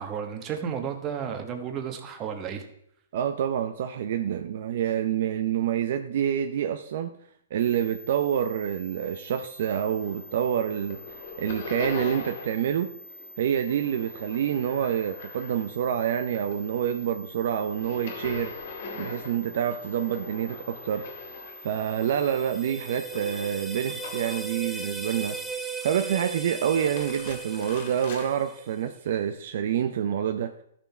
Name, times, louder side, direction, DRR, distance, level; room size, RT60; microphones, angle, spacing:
voice 1, 0.0-2.6, right 7 dB, 25° right, 6 dB, 1.2 m, -32 dB
voice 2, 3.1-7.1 7.5-11.0 11.4-12.9 13.4-18.5 18.9-21.0 21.6-25.4 25.8-30.5, right 9 dB, 60° right, 7 dB, 0.6 m, -27 dB
sound 1, 7.6-25.5, left 2 dB, 75° right, 2.0 m, -46 dB
sound 2, 9.9-10.4 10.7-12.7 13.0-15.9 16.2-24.6 25.1-25.7 26.6-28.3, left 5 dB, 55° left, 2.0 m, -42 dB
sound 3, 21.8-28.8, right 4 dB, ahead, 0.6 m, -37 dB
13.0 x 5.9 x 4.3 m, 0.72 s
hypercardioid pair, 150°, 0 cm